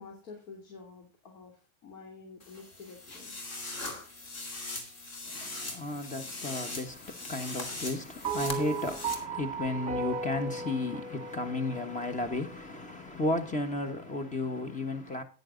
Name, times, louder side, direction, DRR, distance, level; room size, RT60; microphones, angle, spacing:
voice 1, 0.0-3.3, left 4 dB, 85° left, 3.1 m, -49 dB
sound 1, 2.4-9.1, left 2 dB, 40° left, 2.5 m, -40 dB
voice 2, 5.3-15.2, left 2 dB, 20° left, 1.3 m, -34 dB
sound 2, 8.2-12.7, right 4 dB, 15° right, 2.2 m, -36 dB
9.6 x 9.4 x 3.9 m
cardioid pair, 140°, 39 cm